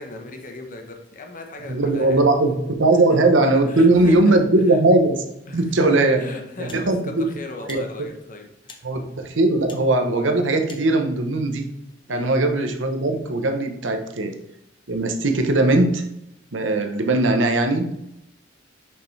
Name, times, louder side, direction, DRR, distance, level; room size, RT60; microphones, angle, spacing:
voice 1, 0.0-2.2 2.9-3.2 3.6-4.4 4.7-4.8 5.5-5.9 6.2-8.9 12.1-12.3, left 2 dB, 45° left, 4 dB, 1.1 m, -38 dB
voice 2, 1.7-5.2 5.5-6.2 6.6-7.2 7.7-7.8 8.8-11.6 12.1-14.3 14.9-16.0 16.5-17.9, right 2 dB, 80° right, 5 dB, 0.9 m, -19 dB
sound 1, 6.7-6.9 7.6-7.8 8.6-8.8 9.7-9.8 10.6-10.9, left 5 dB, 25° left, 0.8 m, -43 dB
6.6 x 5.7 x 3.3 m, 0.80 s
head